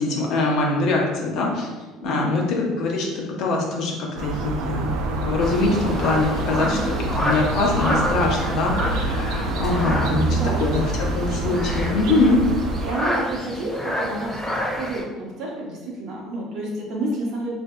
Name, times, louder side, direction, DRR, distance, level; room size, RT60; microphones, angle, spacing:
voice 1, 0.0-1.7 2.0-12.4, left 3 dB, 50° left, -1 dB, 0.7 m, -23 dB
voice 2, 2.0-2.5 6.5-6.8 9.8-10.6 12.8-17.5, right 1 dB, 50° right, -3 dB, 0.9 m, -30 dB
sound 1, 4.2-12.9, right 2 dB, 75° right, 0.4 m, -26 dB
sound 2, 5.4-15.0, equal, 5° right, 0.8 m, -29 dB
4.6 x 2.6 x 2.2 m, 1.3 s
cardioid pair, 170°, 0 cm